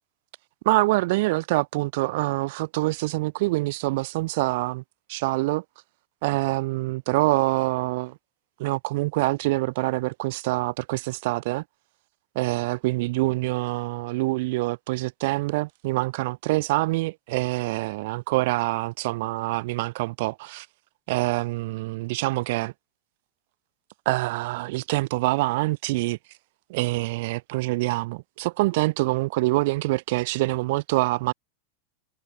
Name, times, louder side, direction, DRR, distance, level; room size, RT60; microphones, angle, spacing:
voice 1, 0.6-4.8 5.1-5.6 6.2-8.2 8.6-11.6 12.3-20.7 21.1-22.7 24.0-26.2 26.7-31.3, right 21 dB, 50° right, 3.4 m, -25 dB
figure-of-eight pair, 90°, 0 cm